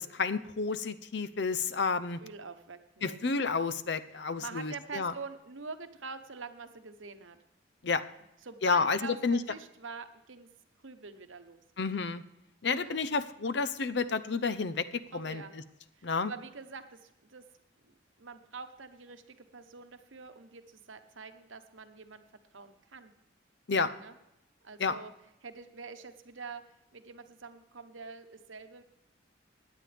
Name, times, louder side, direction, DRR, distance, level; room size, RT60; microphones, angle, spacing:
voice 1, 0.0-2.2 3.0-5.1 7.8-8.0 8.6-9.4 11.8-12.2 12.6-15.4 16.0-16.3 23.7-23.9 24.8-24.9, left 4 dB, 60° left, 14 dB, 0.6 m, -30 dB
voice 2, 2.2-3.2 4.4-7.4 8.4-10.5 10.8-11.6 12.7-13.0 15.1-15.5 16.0-17.4 17.8-22.2 22.5-23.1 24.0-24.1 24.6-25.1 25.4-26.6 26.9-28.8, right 4 dB, 80° right, 9 dB, 1.0 m, -45 dB
16.5 x 10.0 x 3.4 m, 0.86 s
head